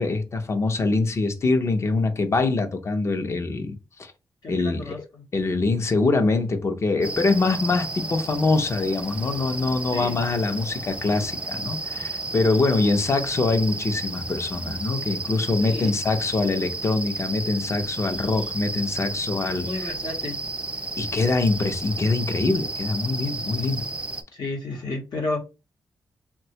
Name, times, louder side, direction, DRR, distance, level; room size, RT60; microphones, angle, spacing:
voice 1, 0.0-4.1 4.5-4.9 5.3-19.9 21.0-23.8, left 3 dB, 40° left, 0.6 m, -24 dB
voice 2, 4.4-5.3 9.9-10.2 15.6-16.0 19.5-20.4 24.3-25.4, left 2 dB, 80° left, 0.9 m, -32 dB
sound 1, 7.0-24.2, right 2 dB, 15° right, 0.3 m, -33 dB
3.4 x 2.2 x 2.8 m
wide cardioid pair, 150°, 7 cm